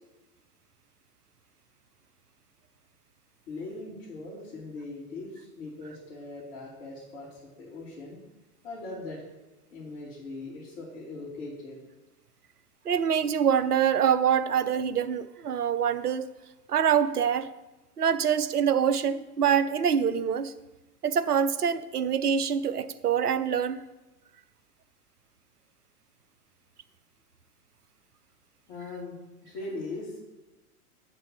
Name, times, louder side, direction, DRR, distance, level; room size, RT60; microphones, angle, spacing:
voice 1, 3.5-8.2 8.6-9.2 9.7-11.8 28.7-29.2 29.5-30.2, left 2 dB, 60° left, -8 dB, 3.1 m, -40 dB
voice 2, 12.9-16.3 16.7-17.5 18.0-20.5 21.0-23.8, right 8 dB, 85° right, 15 dB, 0.6 m, -25 dB
11.0 x 3.8 x 7.2 m, 1.1 s
figure-of-eight pair, 95°, 45 cm